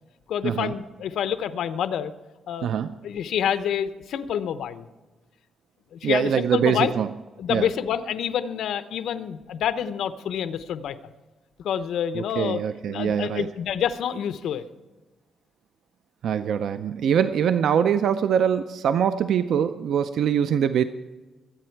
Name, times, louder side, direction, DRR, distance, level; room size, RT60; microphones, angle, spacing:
voice 1, 0.3-2.1 2.5-2.7 3.0-4.9 5.9-6.9 7.4-11.0 11.6-12.6 12.9-14.7, left 9 dB, 80° left, 12 dB, 0.8 m, -27 dB
voice 2, 2.6-3.0 6.0-7.1 7.5-7.7 12.1-13.5 16.2-20.8, right 8 dB, 70° right, 11 dB, 0.5 m, -23 dB
23.5 x 8.7 x 4.6 m, 1.2 s
cardioid pair, 150°, 0 cm